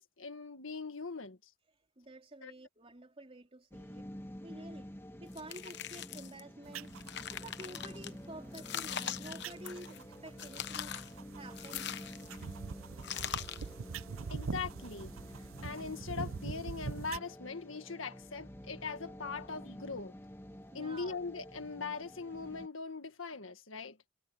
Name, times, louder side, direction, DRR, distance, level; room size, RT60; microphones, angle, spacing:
voice 1, 0.0-1.4 2.4-2.5 14.3-15.1 15.6-20.1 20.7-24.0, left 4 dB, 75° left, 1.7 m, -41 dB
voice 2, 2.0-4.1 4.4-4.9 5.2-6.9 7.3-10.9 11.4-12.2 20.7-21.2, right 1 dB, 30° right, 3.8 m, -50 dB
sound 1, 3.7-22.7, equal, 10° left, 1.4 m, -49 dB
sound 2, 5.3-6.4 6.8-8.1 8.5-10.0 10.4-11.1 11.6-12.4 13.0-13.7, left 9 dB, 55° left, 1.0 m, -41 dB
sound 3, 6.6-17.2, right 5 dB, 85° right, 0.6 m, -44 dB
head